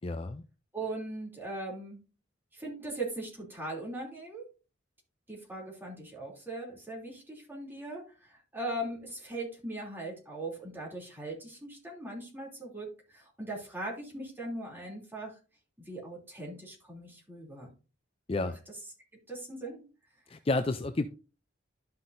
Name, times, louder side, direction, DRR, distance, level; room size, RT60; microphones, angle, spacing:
voice 1, 0.0-0.4 18.3-18.6 20.3-21.1, left 2 dB, 30° left, 0.4 m, -30 dB
voice 2, 0.7-2.0 2.5-4.4 5.3-15.4 15.9-17.7 18.4-18.5 19.3-19.8, right 2 dB, 10° right, 3.0 m, -39 dB
12.0 x 5.7 x 2.6 m
head